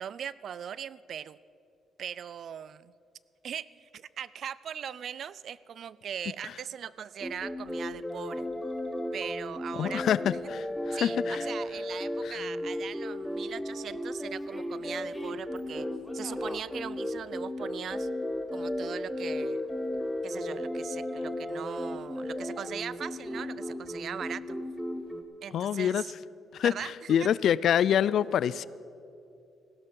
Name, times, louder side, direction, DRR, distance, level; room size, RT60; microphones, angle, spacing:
voice 1, 0.0-1.4 2.0-2.9 3.4-8.5 9.1-10.0 10.9-15.9 16.1-18.1 18.5-19.6 20.2-24.6 25.4-26.1 26.6-27.3, right 8 dB, 60° right, 19 dB, 0.4 m, -40 dB
sound 1, 7.2-25.2, left 1 dB, 5° left, 1.0 m, -35 dB
voice 2, 9.8-11.4 12.2-12.4 25.5-26.0 26.5-28.7, left 9 dB, 70° left, 20 dB, 0.3 m, -26 dB
16.5 x 13.0 x 5.4 m, 2.7 s
cardioid pair, 90°, 0 cm